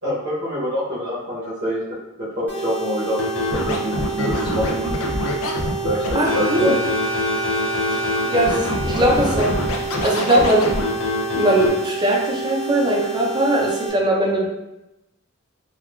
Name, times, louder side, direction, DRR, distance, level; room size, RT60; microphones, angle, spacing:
voice 1, 0.0-1.8 2.2-4.8 5.8-6.8, equal, 60° right, -10 dB, 0.9 m, -26 dB
sound 1, 2.5-13.9, right 4 dB, 10° left, 0.9 m, -29 dB
Scratching (performance technique), 3.2-11.7, left 2 dB, 80° left, 0.5 m, -25 dB
voice 2, 6.1-6.8 7.9-8.0 8.2-10.7 11.3-14.5, right 1 dB, 20° right, -1 dB, 0.5 m, -20 dB
sound 2, 6.3-10.2, right 1 dB, 85° right, 0.5 m, -31 dB
3.5 x 2.2 x 2.3 m, 0.93 s
head